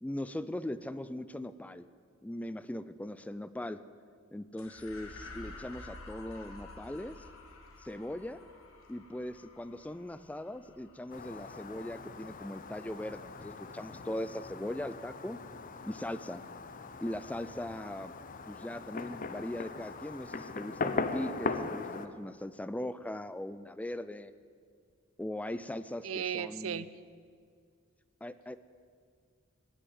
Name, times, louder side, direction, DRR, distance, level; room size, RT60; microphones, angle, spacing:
voice 1, 0.0-1.9 2.2-3.8 4.3-7.2 7.8-8.5 8.9-15.4 15.8-16.4 17.0-18.1 18.5-24.3 25.2-26.9 28.2-28.6, left 1 dB, 5° left, 14 dB, 0.3 m, -39 dB
sound 1, 4.6-13.2, left 2 dB, 85° left, 1.6 m, -51 dB
Fireworks, 11.1-22.1, left 4 dB, 45° left, 0.7 m, -40 dB
voice 2, 26.0-26.9, right 8 dB, 85° right, 16 dB, 0.5 m, -35 dB
19.0 x 6.6 x 7.9 m, 2.1 s
head